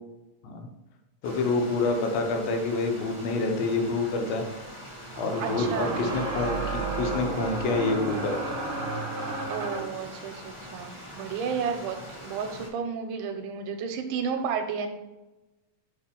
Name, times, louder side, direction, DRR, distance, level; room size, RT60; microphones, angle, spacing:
voice 1, 1.2-4.5 5.2-8.6, left 3 dB, 85° left, 4 dB, 2.7 m, -27 dB
Stream, 1.2-12.7, equal, 25° left, 1.2 m, -44 dB
sound 1, 5.2-10.0, right 2 dB, 55° right, 1.4 m, -32 dB
voice 2, 5.4-6.1 9.5-14.9, right 6 dB, 75° right, 6 dB, 2.1 m, -32 dB
5.5 x 5.3 x 5.2 m, 1.0 s
omnidirectional pair, 4.1 m